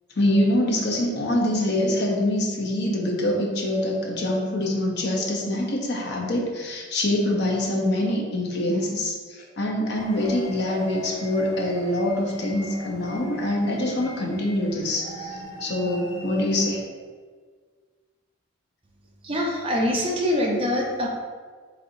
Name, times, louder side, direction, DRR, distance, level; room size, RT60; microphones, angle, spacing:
voice 1, 0.2-16.8, left 1 dB, 55° left, -1 dB, 0.8 m, -25 dB
sound 1, 9.9-16.8, left 1 dB, 25° left, 1.4 m, -39 dB
voice 2, 19.2-21.1, left 1 dB, 25° right, -3 dB, 0.6 m, -24 dB
4.2 x 3.9 x 2.7 m, 1.5 s
head